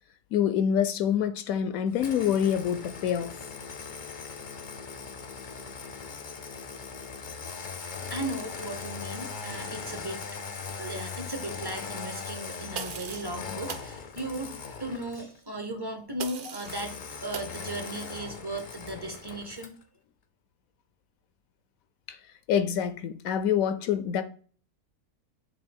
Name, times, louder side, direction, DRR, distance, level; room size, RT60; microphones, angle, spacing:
voice 1, 0.3-3.4 22.1-22.2 22.5-24.2, left 9 dB, 70° left, 0.9 m, -26 dB
Engine starting, 1.9-15.4 16.6-19.8, left 5 dB, 50° left, 0.6 m, -40 dB
voice 2, 8.1-10.2 10.8-19.7, right 1 dB, 25° right, 0.6 m, -36 dB
sound 1, 12.7-13.3 13.7-13.9 16.2-16.8 17.3-17.5, right 7 dB, 80° right, 0.4 m, -38 dB
7.1 x 2.7 x 5.3 m
omnidirectional pair, 1.6 m